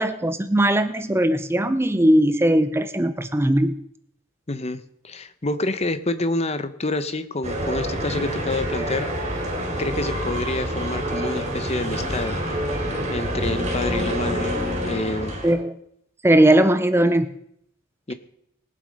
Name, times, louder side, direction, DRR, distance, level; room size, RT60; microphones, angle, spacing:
voice 1, 0.0-3.7 15.4-15.7 16.2-17.3, right 1 dB, 10° right, 11 dB, 0.6 m, -19 dB
voice 2, 4.5-9.1 9.8-12.4 13.1-14.5 14.8-15.3 18.1-18.2, left 2 dB, 30° left, 11 dB, 0.9 m, -28 dB
sound 1, 7.4-15.5, equal, 30° right, 3.5 m, -27 dB
20.5 x 7.6 x 5.3 m, 0.70 s
head